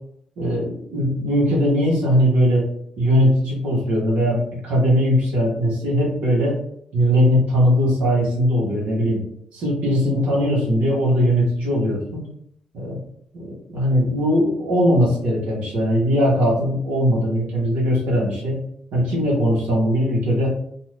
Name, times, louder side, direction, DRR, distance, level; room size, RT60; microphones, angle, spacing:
voice 1, 0.4-2.6 3.0-6.5 6.9-9.2 9.5-12.0 12.7-13.0 13.3-18.6 18.9-20.5, equal, 75° right, -4 dB, 1.1 m, -20 dB
2.6 x 2.4 x 3.2 m, 0.69 s
cardioid pair, 160°, 2 cm